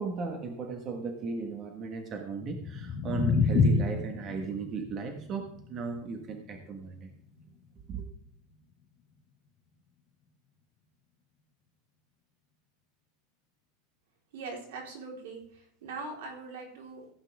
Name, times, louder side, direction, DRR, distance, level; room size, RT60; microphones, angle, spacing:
voice 1, 0.0-7.1 7.9-8.0, right 4 dB, 25° right, 4 dB, 1.4 m, -36 dB
sound 1, 2.4-8.5, left 4 dB, 20° left, 2.0 m, -30 dB
voice 2, 14.3-17.1, right 3 dB, 80° right, 0 dB, 3.9 m, -41 dB
15.5 x 8.8 x 3.5 m, 0.67 s
supercardioid pair, 165°, 0 cm